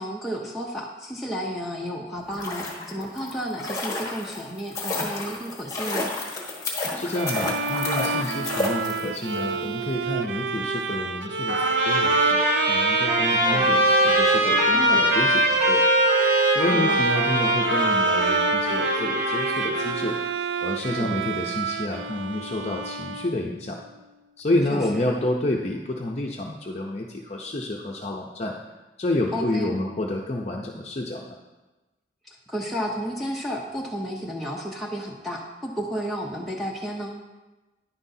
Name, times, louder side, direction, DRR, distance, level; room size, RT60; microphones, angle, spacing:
voice 1, 0.0-6.1 13.4-13.7 14.7-15.1 16.7-17.0 20.9-21.2 24.7-25.0 29.3-29.8 32.3-37.1, equal, ahead, -2 dB, 0.7 m, -32 dB
sound 1, 2.2-9.4 9.6-9.7, left 2 dB, 20° left, 1.2 m, -31 dB
voice 2, 6.9-12.4 12.7-15.8 16.5-20.2 20.6-23.8 24.4-28.5 29.0-31.4, left 1 dB, 35° left, -1 dB, 0.6 m, -29 dB
Bowed string instrument, 7.1-23.7, right 6 dB, 85° right, 0.4 m, -27 dB
Trumpet, 11.5-20.1, equal, 55° right, 2.6 m, -23 dB
10.0 x 9.6 x 2.7 m, 1.1 s
head